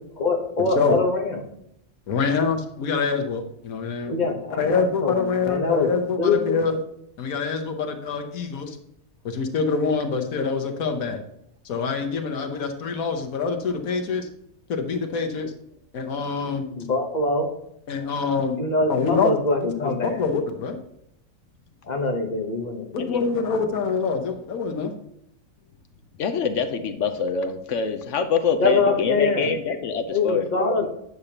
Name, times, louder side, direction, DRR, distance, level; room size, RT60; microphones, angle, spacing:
voice 1, 0.2-1.4 4.0-5.9 6.2-6.6 16.7-17.5 18.6-20.2 21.9-23.3 28.6-29.6 30.1-30.9, left 3 dB, 35° left, 3 dB, 1.1 m, -24 dB
voice 2, 2.1-4.2 4.6-6.8 7.2-8.8 9.2-11.2 11.6-14.3 14.7-15.5 15.9-16.6 17.9-18.6 18.9-19.3 19.8-20.8 22.9-24.9, left 5 dB, 85° left, 5 dB, 1.4 m, -25 dB
voice 3, 26.2-30.5 30.8-30.9, left 5 dB, 65° left, 7 dB, 1.0 m, -25 dB
9.5 x 6.6 x 2.9 m, 0.76 s
omnidirectional pair, 1.4 m